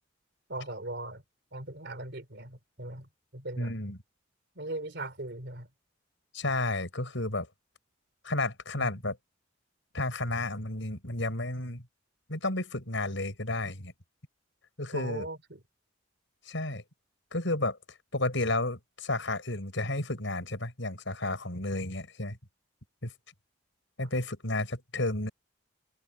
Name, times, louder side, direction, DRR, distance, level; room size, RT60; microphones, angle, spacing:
voice 1, 0.5-1.2 1.5-3.7 4.6-5.7 8.7-8.9 14.9-15.6, right 2 dB, 55° right, 3.7 m, -39 dB
voice 2, 3.6-4.0 6.3-7.5 8.2-9.2 9.9-11.8 12.3-13.9 14.8-15.3 16.5-16.8 17.3-17.8 18.1-22.4 23.0-23.1 24.0-25.3, left 2 dB, 65° left, 6.6 m, -32 dB
head